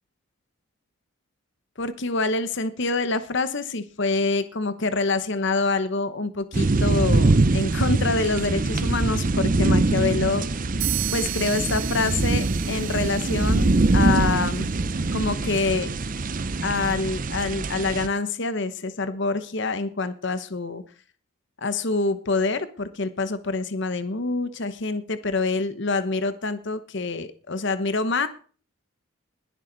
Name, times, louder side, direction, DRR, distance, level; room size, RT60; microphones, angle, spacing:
voice 1, 1.8-10.5 11.1-14.7 15.1-15.9 16.6-20.8 21.6-28.3, left 3 dB, 55° left, 12 dB, 1.0 m, -26 dB
sound 1, 6.5-18.1, right 2 dB, 40° right, 0.6 m, -23 dB
sound 2, 10.8-14.6, right 17 dB, 85° right, 0.9 m, -34 dB
21.0 x 7.3 x 4.0 m, 0.40 s
head